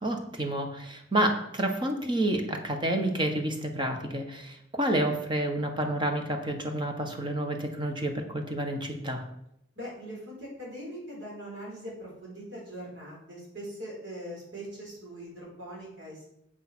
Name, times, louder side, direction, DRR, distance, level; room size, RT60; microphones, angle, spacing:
voice 1, 0.0-9.2, right 1 dB, 25° right, 4 dB, 1.5 m, -29 dB
voice 2, 9.8-16.3, equal, 80° right, -4 dB, 4.6 m, -41 dB
8.1 x 6.5 x 6.3 m, 0.80 s
head